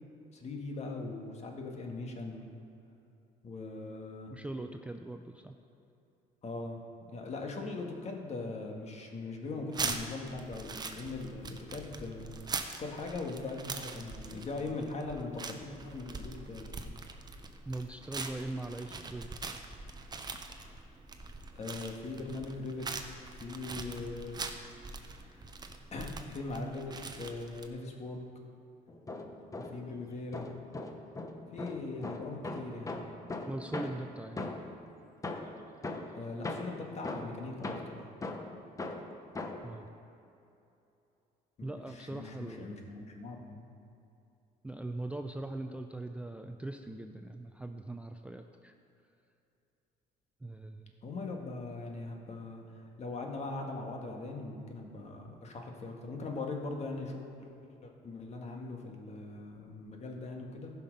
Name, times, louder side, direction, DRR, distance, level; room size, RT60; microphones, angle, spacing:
voice 1, 0.3-2.6 3.4-4.3 6.4-12.4 12.8-16.8 21.5-22.9 23.4-24.4 25.0-25.5 25.9-28.2 29.5-30.5 31.5-32.9 36.1-38.0 41.6-43.7 51.0-52.6 53.0-57.5 57.8-60.7, left 3 dB, 40° left, 2 dB, 1.6 m, -40 dB
voice 2, 4.3-5.5 17.7-19.4 33.4-34.4 39.6-39.9 41.6-42.7 44.6-48.7 50.4-50.9, right 2 dB, 5° right, 5 dB, 0.4 m, -41 dB
sound 1, 9.7-27.7, right 3 dB, 25° right, 0.8 m, -42 dB
sound 2, 28.9-30.0 30.3-34.8 35.2-39.8, left 2 dB, 20° left, 0.9 m, -40 dB
15.0 x 5.8 x 5.2 m, 2.7 s
cardioid pair, 110°, 17 cm